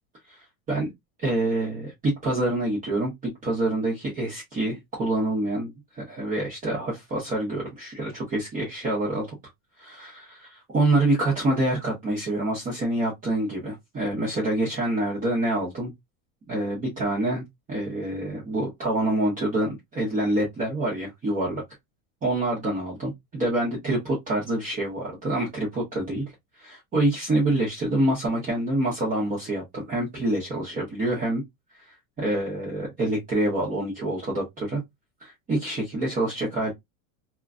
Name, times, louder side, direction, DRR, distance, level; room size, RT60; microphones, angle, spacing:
voice 1, 0.3-0.9 1.2-9.3 9.8-15.9 16.5-21.6 22.2-26.2 26.6-31.4 31.7-31.9 32.2-34.8 35.2-36.7, right 1 dB, 20° right, 0.8 m, -26 dB
2.9 x 2.3 x 2.4 m
cardioid pair, 165°, 41 cm